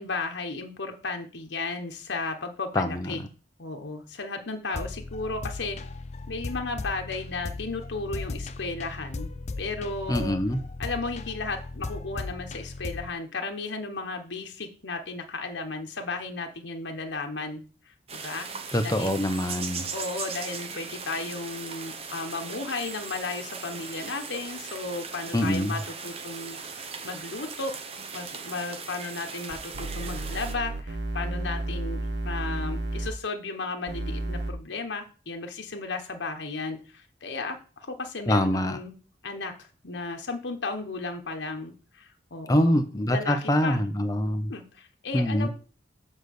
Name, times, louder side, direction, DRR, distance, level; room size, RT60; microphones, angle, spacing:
voice 1, 0.0-3.2 3.6-5.8 6.3-9.3 9.6-10.4 10.8-18.5 18.8-19.3 19.9-27.7 28.1-39.0 39.2-42.8 43.1-43.8 44.5-45.5, left 3 dB, 85° left, 4 dB, 1.1 m, -34 dB
voice 2, 2.7-3.2 10.1-10.6 18.7-19.9 25.3-25.8 38.3-38.8 42.5-44.5 45.1-45.5, left 1 dB, 20° left, 7 dB, 0.8 m, -25 dB
sound 1, 4.7-13.1, left 3 dB, 35° left, 0.4 m, -37 dB
sound 2, 18.1-30.5, right 5 dB, 30° right, 0.8 m, -38 dB
sound 3, 29.5-33.1 33.9-34.5, right 1 dB, 70° right, 1.2 m, -32 dB
7.4 x 4.0 x 6.5 m, 0.36 s
head